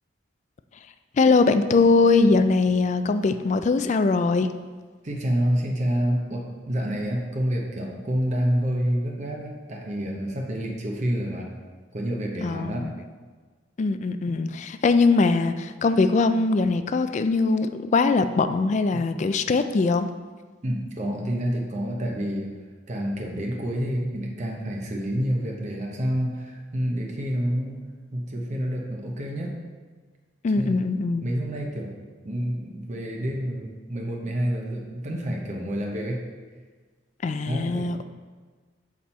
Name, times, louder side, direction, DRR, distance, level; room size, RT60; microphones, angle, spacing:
voice 1, 1.2-4.5 12.4-12.9 13.8-20.1 30.4-31.3 37.2-38.0, left 3 dB, 35° left, 11 dB, 0.3 m, -21 dB
voice 2, 5.0-11.5 11.9-12.9 18.9-19.1 20.6-22.5 22.9-27.8 28.1-29.5 30.6-30.8 31.2-31.9 32.2-36.2 37.5-37.9, equal, 40° right, 0 dB, 0.8 m, -28 dB
7.3 x 4.3 x 4.3 m, 1.4 s
head